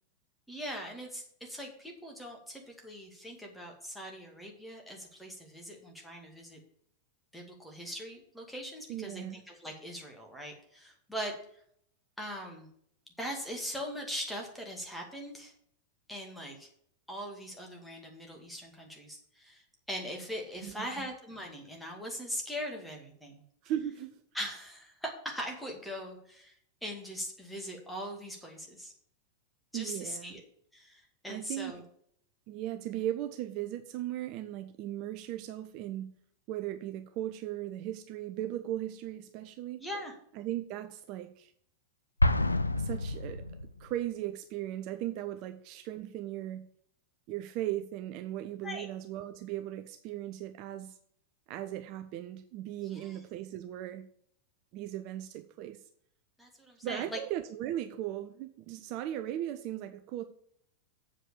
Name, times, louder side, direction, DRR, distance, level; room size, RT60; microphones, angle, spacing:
voice 1, 0.5-6.6 7.3-11.3 12.2-12.7 13.2-15.5 16.1-16.7 17.1-19.6 19.9-23.4 24.3-26.5 26.8-28.9 29.7-30.4 30.7-31.8 39.8-40.1 48.6-48.9 52.9-53.2 56.4-57.2, equal, ahead, 0 dB, 2.1 m, -41 dB
voice 2, 8.9-9.4 20.6-21.1 23.6-24.2 29.7-30.3 31.3-31.8 32.5-36.1 36.5-39.8 40.3-41.5 42.8-43.5 43.8-46.7 47.3-51.0 51.5-54.1 54.7-55.8 56.8-60.2, right 13 dB, 40° right, 8 dB, 0.5 m, -37 dB
Explosion, 42.2-44.0, left 2 dB, 85° left, 0.4 m, -28 dB
7.6 x 5.0 x 6.7 m, 0.67 s
figure-of-eight pair, 90°, 0 cm